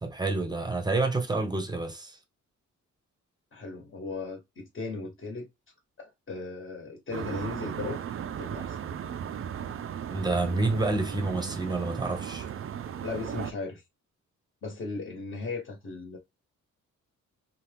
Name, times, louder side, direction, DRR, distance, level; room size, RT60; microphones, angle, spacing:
voice 1, 0.0-2.2 10.1-12.5, right 2 dB, 15° right, 0.7 m, -28 dB
voice 2, 3.5-5.5 6.0-8.0 8.4-8.8 12.8-13.8 14.6-16.2, left 3 dB, 40° left, 1.2 m, -37 dB
sound 1, 7.1-13.5, right 8 dB, 45° right, 0.4 m, -36 dB
2.8 x 2.3 x 3.4 m
cardioid pair, 110°, 31 cm